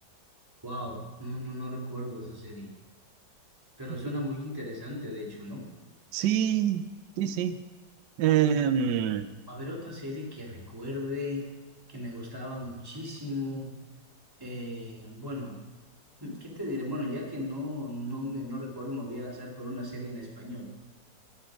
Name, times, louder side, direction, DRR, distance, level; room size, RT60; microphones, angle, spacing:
voice 1, 0.6-2.7 3.8-5.6 9.5-11.5 11.9-13.7 14.4-15.6 16.2-20.7, left 1 dB, 10° right, -3 dB, 3.0 m, -36 dB
voice 2, 6.1-6.8 7.2-7.6 8.2-9.3, right 9 dB, 70° right, 10 dB, 1.2 m, -25 dB
19.0 x 9.9 x 5.1 m, 1.3 s
omnidirectional pair, 2.0 m